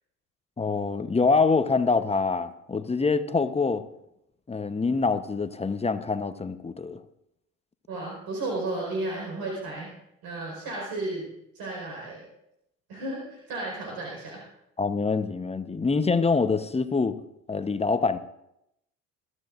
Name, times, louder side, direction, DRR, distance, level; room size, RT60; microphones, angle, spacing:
voice 1, 0.6-3.8 4.5-7.0 14.8-17.2 17.5-18.2, left 4 dB, 15° left, 11 dB, 0.9 m, -25 dB
voice 2, 7.9-9.9 10.2-11.2 11.5-12.2 12.9-14.4, right 2 dB, 60° right, -2 dB, 4.8 m, -33 dB
22.0 x 13.0 x 2.5 m, 0.80 s
hypercardioid pair, 65°, 40 cm